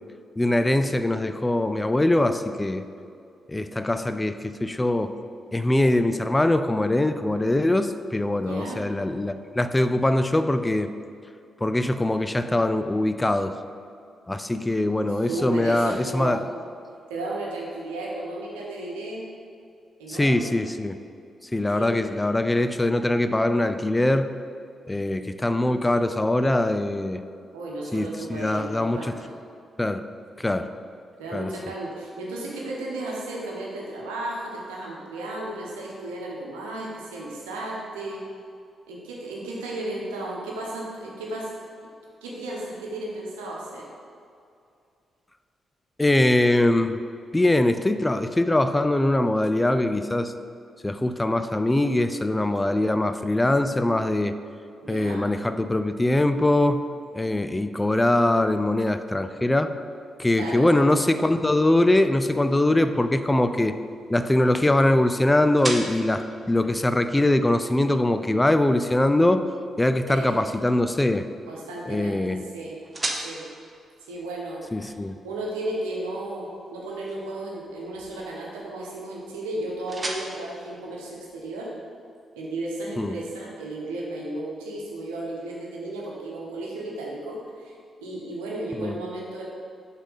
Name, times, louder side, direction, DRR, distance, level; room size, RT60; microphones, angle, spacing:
voice 1, 0.4-2.8 3.5-5.1 5.5-10.9 11.6-13.6 14.3-16.4 20.1-20.9 21.5-24.4 24.9-27.2 27.9-29.1 29.8-30.0 30.4-30.7 31.3-31.5 46.0-47.0 47.3-50.3 50.8-54.3 54.9-56.9 57.1-59.7 60.2-63.8 64.1-69.5 69.8-71.3 71.9-72.4 74.7-75.2 83.0-83.2 88.8-89.0, left 1 dB, 20° left, 10 dB, 0.4 m, -22 dB
voice 2, 8.4-8.8 15.2-16.4 17.1-19.2 20.0-20.5 21.7-21.9 27.5-29.3 31.2-38.2 38.9-41.5 42.2-43.8 54.8-55.2 60.3-60.8 70.1-70.3 71.5-72.8 73.2-73.4 74.1-74.6 74.9-75.0 75.2-81.7 82.3-87.7 88.0-89.5, right 2 dB, 85° right, -3 dB, 1.0 m, -34 dB
sound 1, 62.9-81.7, right 2 dB, 35° right, 0.9 m, -41 dB
5.8 x 4.0 x 5.5 m, 2.4 s
hypercardioid pair, 40°, 0 cm